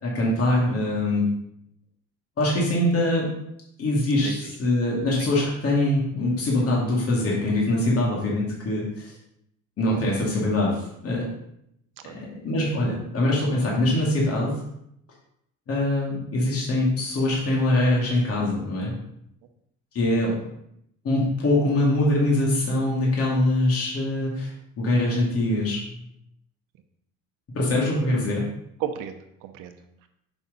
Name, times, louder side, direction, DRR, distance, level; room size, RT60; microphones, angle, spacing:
voice 1, 0.0-1.3 2.4-3.3 3.8-9.1 9.8-11.3 12.1-14.5 15.7-18.9 19.9-20.5 21.0-24.5 24.8-26.0 27.5-28.4, left 1 dB, 50° left, -4 dB, 2.3 m, -23 dB
voice 2, 4.2-4.5 5.2-5.3 12.0-12.1 28.8-30.1, right 9 dB, 85° right, 7 dB, 0.8 m, -34 dB
6.2 x 5.5 x 3.9 m, 0.76 s
cardioid pair, 105°, 31 cm